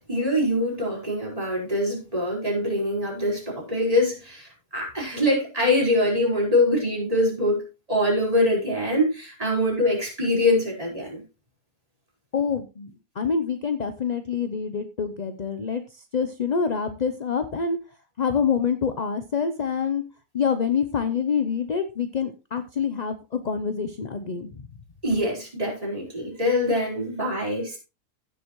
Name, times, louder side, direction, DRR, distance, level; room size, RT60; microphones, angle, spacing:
voice 1, 0.1-11.2 25.0-27.8, left 1 dB, 25° right, 4.9 m, -24 dB
voice 2, 12.3-17.8 18.2-20.0 20.3-23.2 23.4-24.7, left 6 dB, 45° left, 0.5 m, -26 dB
16.0 x 7.1 x 3.0 m
omnidirectional pair, 1.6 m